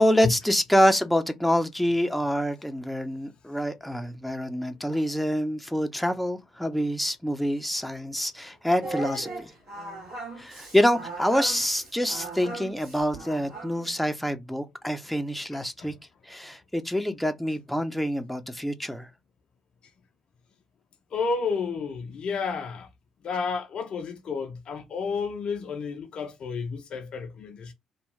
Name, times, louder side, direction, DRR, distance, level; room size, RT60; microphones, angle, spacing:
voice 1, 0.0-9.5 10.4-15.9 16.3-19.1, equal, ahead, 0.6 m, -26 dB
Singing, 8.8-13.9, right 2 dB, 60° right, 1.5 m, -38 dB
voice 2, 15.5-15.9 21.1-22.9 23.2-27.7, left 5 dB, 50° left, 0.5 m, -31 dB
2.9 x 2.2 x 3.2 m
figure-of-eight pair, 45°, 2 cm